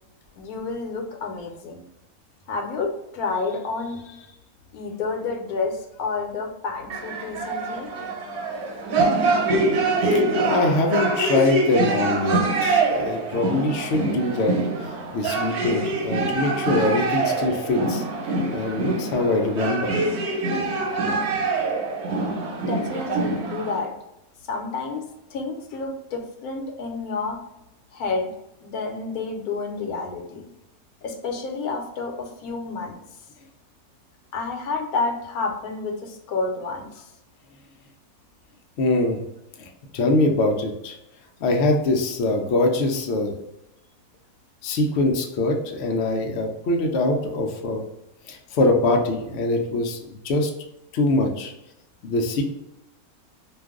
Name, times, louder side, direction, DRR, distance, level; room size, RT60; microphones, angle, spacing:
voice 1, 0.4-1.9 2.5-4.4 4.7-7.9 22.7-23.9 24.5-25.0 25.3-27.4 27.9-28.3 28.6-30.5 31.0-33.0 34.3-37.1, left 4 dB, 85° left, 2 dB, 1.1 m, -30 dB
sound 1, 6.9-23.8, right 2 dB, 90° right, 1.2 m, -24 dB
voice 2, 10.1-14.5 15.1-18.0 18.5-19.9 38.8-39.2 39.6-41.0 41.4-43.3 44.6-47.8 48.3-50.5 50.9-51.5 52.0-52.4, left 2 dB, 65° left, 2 dB, 0.7 m, -23 dB
2.5 x 2.3 x 3.5 m, 0.88 s
omnidirectional pair, 1.5 m